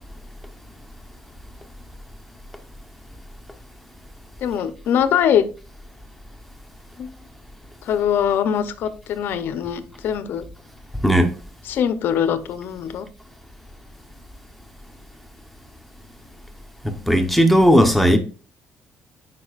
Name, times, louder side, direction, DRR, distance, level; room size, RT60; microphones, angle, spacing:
voice 1, 4.4-5.5 7.0-7.1 7.8-10.4 11.7-13.1, left 9 dB, 70° left, 0.6 m, -22 dB
voice 2, 16.8-18.2, equal, ahead, 0.8 m, -16 dB
9.5 x 4.7 x 2.4 m
cardioid pair, 130°, 4 cm